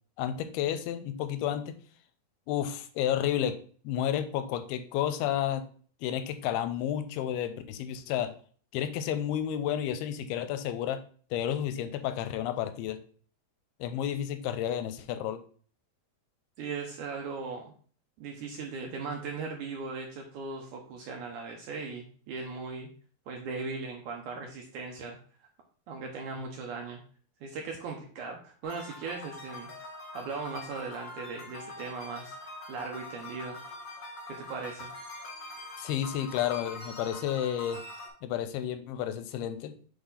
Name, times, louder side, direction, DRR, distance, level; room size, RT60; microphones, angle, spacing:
voice 1, 0.2-1.8 2.5-3.6 3.8-5.6 6.0-8.4 8.7-11.0 11.3-13.0 13.8-15.4 35.8-37.8 38.2-39.7, left 10 dB, 90° left, 10 dB, 2.6 m, -31 dB
voice 2, 16.6-17.7 18.2-22.9 23.3-25.2 25.9-27.0 27.4-29.7 30.1-32.4 32.7-33.6 34.3-34.9, right 4 dB, 75° right, 1 dB, 1.9 m, -38 dB
sound 1, 28.6-38.1, left 2 dB, 50° left, 1.3 m, -44 dB
8.0 x 3.5 x 4.0 m, 0.44 s
omnidirectional pair, 4.4 m